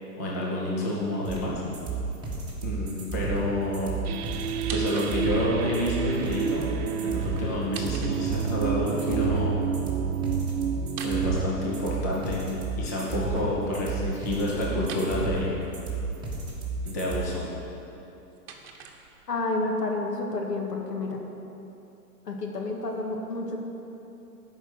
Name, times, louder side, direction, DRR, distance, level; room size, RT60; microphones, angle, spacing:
voice 1, 0.2-1.6 2.6-3.9 4.7-6.7 7.0-9.6 11.0-12.4 12.8-15.5 16.8-17.4, left 1 dB, 15° left, -4 dB, 0.3 m, -29 dB
sound 1, 1.2-17.2, right 3 dB, 10° right, 1.7 m, -32 dB
sound 2, 4.0-13.4, right 8 dB, 70° right, 0.7 m, -31 dB
sound 3, 4.5-5.5 7.5-8.7 10.8-12.2 14.8-15.1 17.9-19.5, right 5 dB, 40° right, 1.2 m, -43 dB
voice 2, 19.3-21.2 22.3-23.7, left 2 dB, 85° left, 1 dB, 2.0 m, -30 dB
11.0 x 5.6 x 7.6 m, 2.9 s
hypercardioid pair, 145°, 47 cm